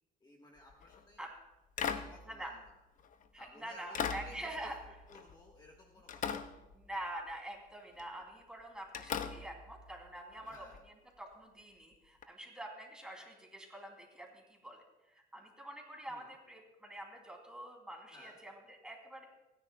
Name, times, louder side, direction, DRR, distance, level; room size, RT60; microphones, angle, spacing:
voice 1, 0.2-1.2 1.8-2.7 3.4-4.7 5.1-6.5 10.5-10.8 16.1-16.3 18.1-18.4, left 1 dB, 25° left, 0 dB, 1.4 m, -57 dB
sound 1, 0.7-1.0 1.8-3.3 3.9-5.8 6.1-7.3 8.0-8.2 8.9-10.8 12.2-12.3, left 7 dB, 50° left, 0.8 m, -41 dB
voice 2, 3.3-4.8 6.7-19.3, right 1 dB, 5° right, 0 dB, 3.0 m, -46 dB
29.5 x 10.5 x 2.3 m, 1.0 s
cardioid pair, 110°, 17 cm